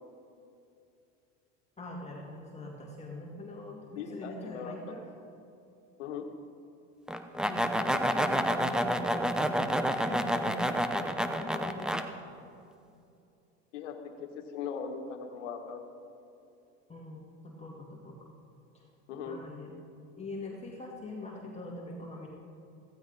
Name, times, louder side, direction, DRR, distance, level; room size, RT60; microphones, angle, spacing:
voice 1, 1.8-5.0 7.4-12.1 16.9-18.3 18.7-18.9 19.3-19.7 20.2-22.3, left 1 dB, 20° left, -3 dB, 2.2 m, -43 dB
voice 2, 3.9-4.9 6.0-6.3 13.7-15.8 19.1-19.4, left 6 dB, 85° left, 5 dB, 1.7 m, -39 dB
sound 1, 7.1-12.0, equal, ahead, 0.7 m, -29 dB
15.5 x 15.0 x 4.1 m, 2.7 s
supercardioid pair, 105°, 36 cm